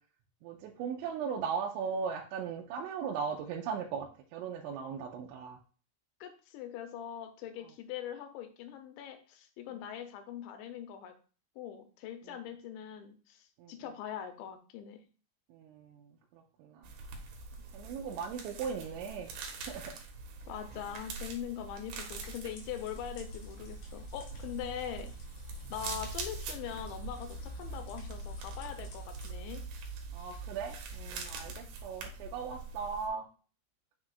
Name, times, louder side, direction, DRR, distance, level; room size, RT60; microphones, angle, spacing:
voice 1, 0.4-5.6 12.3-12.4 13.6-13.7 15.5-16.9 17.7-20.0 30.1-33.3, right 6 dB, 85° right, 0 dB, 3.0 m, -38 dB
voice 2, 6.2-11.1 11.6-15.0 20.5-25.2 25.7-29.7, left 9 dB, 85° left, 7 dB, 2.9 m, -42 dB
sound 1, 16.8-33.1, right 3 dB, 70° right, 3.0 m, -43 dB
sound 2, 20.1-28.0, right 2 dB, 40° right, 2.6 m, -57 dB
sound 3, 21.9-29.3, equal, 55° left, 3.0 m, -52 dB
8.0 x 6.6 x 2.4 m, 0.38 s
omnidirectional pair, 5.4 m